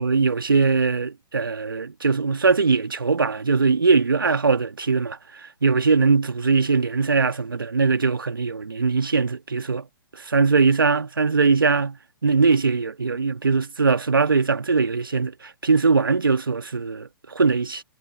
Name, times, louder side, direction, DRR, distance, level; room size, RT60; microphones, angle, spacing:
voice 1, 0.0-9.8 10.2-12.0 12.2-17.8, right 4 dB, 70° right, 1.7 m, -21 dB
figure-of-eight pair, 115°, 12 cm